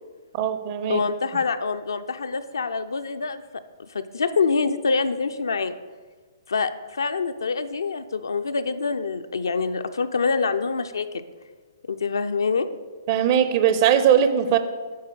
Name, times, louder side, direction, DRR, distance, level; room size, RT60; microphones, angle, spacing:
voice 1, 0.3-1.0 13.1-14.6, right 9 dB, 35° right, 10 dB, 0.6 m, -20 dB
voice 2, 0.9-3.4 3.9-5.7 6.5-11.2 11.9-12.7, left 4 dB, 70° left, 9 dB, 0.5 m, -25 dB
9.4 x 3.7 x 6.6 m, 1.4 s
figure-of-eight pair, 125°, 2 cm